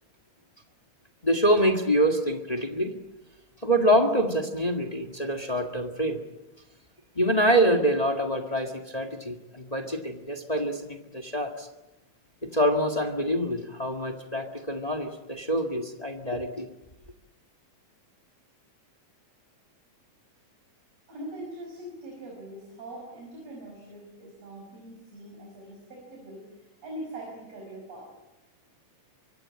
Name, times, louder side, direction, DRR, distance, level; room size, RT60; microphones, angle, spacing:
voice 1, 1.2-3.0 3.6-6.2 7.1-11.7 12.4-16.7, equal, 20° left, 5 dB, 1.2 m, -25 dB
voice 2, 21.1-28.1, right 1 dB, 50° right, 0 dB, 6.8 m, -42 dB
24.5 x 24.0 x 8.7 m, 0.98 s
omnidirectional pair, 3.7 m